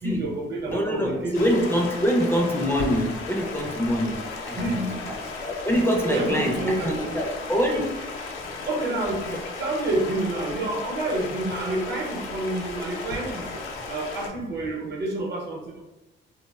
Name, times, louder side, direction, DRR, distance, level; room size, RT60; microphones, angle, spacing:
voice 1, 0.0-1.7 4.5-5.0 6.0-7.1 8.7-13.5 13.9-15.8, right 2 dB, 55° right, 0 dB, 0.7 m, -29 dB
voice 2, 0.7-4.8 5.1-7.9, equal, 10° left, -1 dB, 0.4 m, -25 dB
Stream, 1.3-14.3, left 3 dB, 85° left, 0.4 m, -35 dB
2.7 x 2.0 x 2.2 m, 1.0 s
cardioid pair, 90°, 20 cm